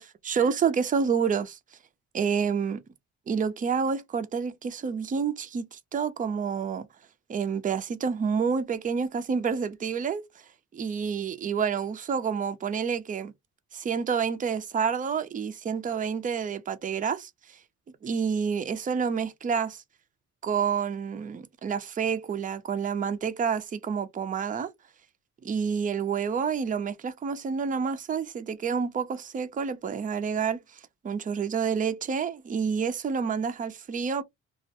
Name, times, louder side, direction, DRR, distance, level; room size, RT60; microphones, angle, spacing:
voice 1, 0.2-1.6 2.1-2.8 3.3-6.9 7.3-10.2 10.7-13.3 13.7-17.3 18.0-19.8 20.4-24.7 25.4-30.6 31.0-34.2, right 6 dB, 25° right, 0.4 m, -28 dB
2.4 x 2.1 x 2.7 m
cardioid pair, 90°, 30 cm